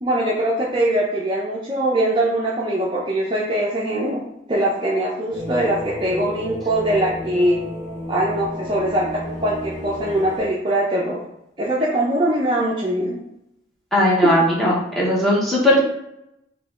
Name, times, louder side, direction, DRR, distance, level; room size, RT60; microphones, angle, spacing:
voice 1, 0.0-4.2 4.5-7.6 8.1-9.1 9.4-11.2 11.6-13.2 14.2-14.4, right 1 dB, 25° right, -4 dB, 0.5 m, -22 dB
sound 1, 5.3-10.4, left 1 dB, 20° left, 1.0 m, -32 dB
voice 2, 13.9-15.8, equal, ahead, -6 dB, 1.0 m, -18 dB
3.9 x 2.9 x 3.6 m, 0.81 s
head